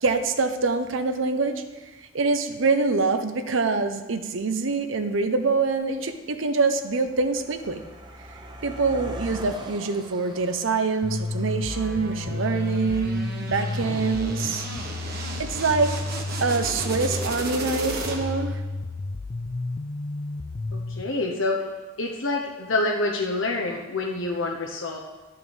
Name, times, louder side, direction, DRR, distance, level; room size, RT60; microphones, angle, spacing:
voice 1, 0.0-1.6 2.1-7.8 8.6-14.7 15.1-15.9 16.4-18.6, right 4 dB, 80° right, 8 dB, 0.8 m, -25 dB
Car passing by, 4.1-4.2 5.0-5.3 5.5-15.9, right 1 dB, 25° right, 0.9 m, -44 dB
sound 1, 11.0-21.0, left 3 dB, 35° left, 0.4 m, -31 dB
sound 2, 11.7-18.5, right 3 dB, 55° right, 1.5 m, -35 dB
voice 2, 20.7-21.6 22.0-25.0, left 2 dB, 90° left, 0 dB, 1.0 m, -27 dB
11.0 x 5.7 x 7.1 m, 1.2 s
head